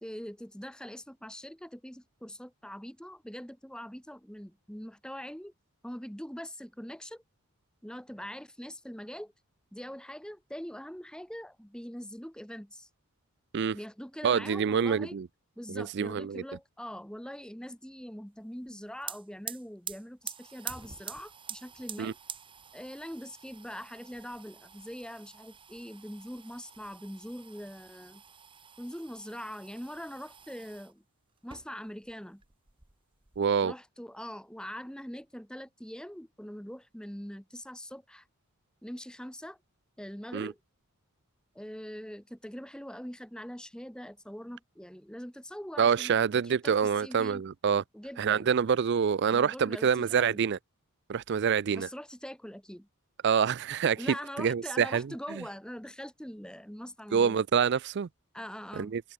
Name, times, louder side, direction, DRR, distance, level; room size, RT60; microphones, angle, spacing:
voice 1, 0.0-5.5 5.8-7.2 7.8-9.3 9.7-12.9 13.7-15.2 15.6-22.2 22.7-28.2 28.8-31.0 31.4-32.4 33.6-38.2 38.8-39.6 40.0-40.6 41.6-47.4 47.9-48.5 49.3-50.4 51.7-52.9 54.0-57.5 58.3-59.0, equal, 5° left, 1.8 m, -43 dB
voice 2, 14.2-15.3 15.7-16.4 22.0-22.1 33.4-33.7 40.3-40.5 45.8-47.8 48.2-50.6 51.1-51.9 53.2-55.1 57.1-58.1 58.8-59.0, right 7 dB, 50° right, 0.4 m, -26 dB
sound 1, 18.7-18.8 19.0-30.9 31.4-32.1 32.4-33.4, right 8 dB, 25° right, 1.3 m, -46 dB
head